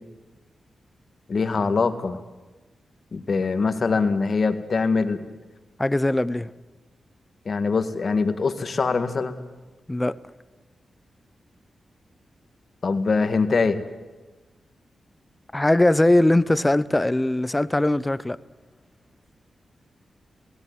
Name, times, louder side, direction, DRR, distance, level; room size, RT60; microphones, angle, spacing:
voice 1, 1.3-2.2 3.1-5.2 7.5-9.4 12.8-13.8, left 4 dB, 55° left, 9 dB, 1.8 m, -23 dB
voice 2, 5.8-6.5 9.9-10.1 15.5-18.4, left 1 dB, 15° left, 17 dB, 0.8 m, -20 dB
18.0 x 17.0 x 9.5 m, 1.2 s
cardioid pair, 60°, 0 cm